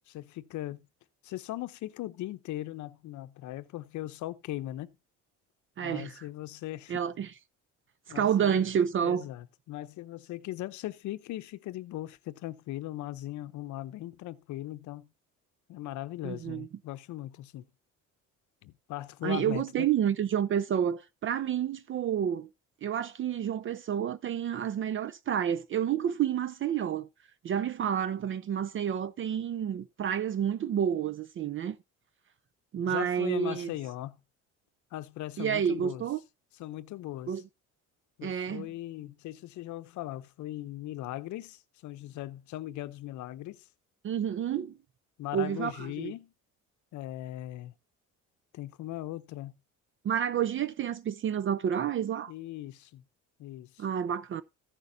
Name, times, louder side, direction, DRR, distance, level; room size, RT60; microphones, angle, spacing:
voice 1, 0.1-0.9 1.2-4.9 5.8-7.0 8.1-8.6 9.0-15.1 15.7-17.6 18.6-19.9 32.8-34.2 34.9-36.0 36.6-37.4 38.2-43.7 45.2-46.3 46.9-47.7 48.5-49.5 52.3-53.0 53.4-53.8, left 15 dB, 65° left, 0.7 m, -39 dB
voice 2, 5.8-6.1 6.9-7.3 8.1-9.2 16.2-16.7 19.2-22.5 22.8-27.1 27.4-31.8 32.7-33.7 35.4-36.2 37.3-37.4 38.2-38.7 44.0-44.7 45.3-45.7 46.0-46.1 50.0-52.3 53.8-54.4, right 9 dB, 40° right, 0.5 m, -29 dB
15.0 x 6.5 x 2.6 m
cardioid pair, 115°, 31 cm